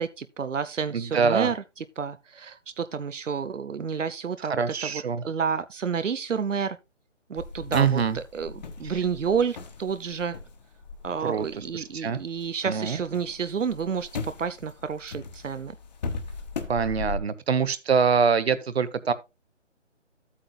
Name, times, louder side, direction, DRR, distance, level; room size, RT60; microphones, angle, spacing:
voice 1, 0.0-6.8 7.3-10.4 11.0-15.8, right 6 dB, 90° right, 0.8 m, -30 dB
voice 2, 0.9-1.5 4.6-5.2 7.7-8.2 11.2-11.5 11.7-12.2 12.6-13.0 16.7-19.1, right 6 dB, 55° right, 1.1 m, -24 dB
sound 1, 7.4-12.5 12.8-17.2, left 4 dB, 35° left, 1.4 m, -38 dB
12.5 x 8.7 x 2.3 m
figure-of-eight pair, 160°, 37 cm